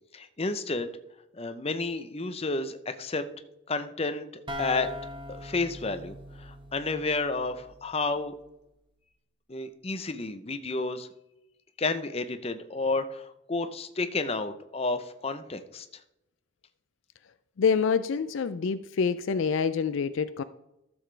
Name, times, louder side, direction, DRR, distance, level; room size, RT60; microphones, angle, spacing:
voice 1, 0.1-0.9 1.4-3.2 3.7-4.3 4.6-4.9 5.4-8.4 9.5-11.1 11.8-13.2 13.5-15.9, left 3 dB, 30° left, 9 dB, 0.6 m, -31 dB
sound 1, 4.5-8.1, equal, 25° right, 0.9 m, -41 dB
voice 2, 17.6-20.4, left 6 dB, 65° left, 13 dB, 0.4 m, -26 dB
13.5 x 7.1 x 3.3 m, 0.88 s
head